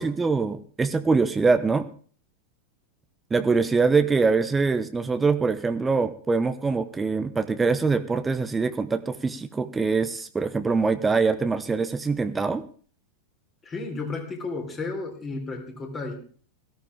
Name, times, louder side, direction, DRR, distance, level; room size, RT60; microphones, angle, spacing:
voice 1, 0.0-1.9 3.3-12.6, right 4 dB, 15° right, 10 dB, 0.8 m, -23 dB
voice 2, 13.6-16.2, left 3 dB, 20° left, 2 dB, 3.5 m, -33 dB
17.5 x 14.0 x 3.5 m, 0.43 s
figure-of-eight pair, 90°, 0 cm